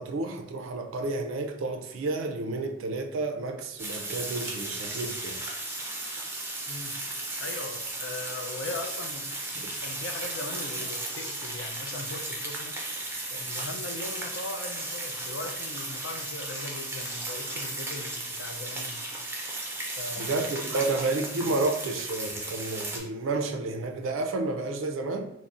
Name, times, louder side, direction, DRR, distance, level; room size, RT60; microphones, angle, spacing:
voice 1, 0.0-5.4 9.6-9.7 20.2-25.2, right 3 dB, 90° right, 0.4 m, -31 dB
sound 1, 3.8-23.0, right 2 dB, 10° right, 0.4 m, -35 dB
voice 2, 6.7-7.0 7.4-9.3 9.8-12.8 13.3-19.0 20.0-20.9 21.4-21.6, left 3 dB, 80° left, 0.4 m, -39 dB
3.8 x 2.0 x 2.4 m
head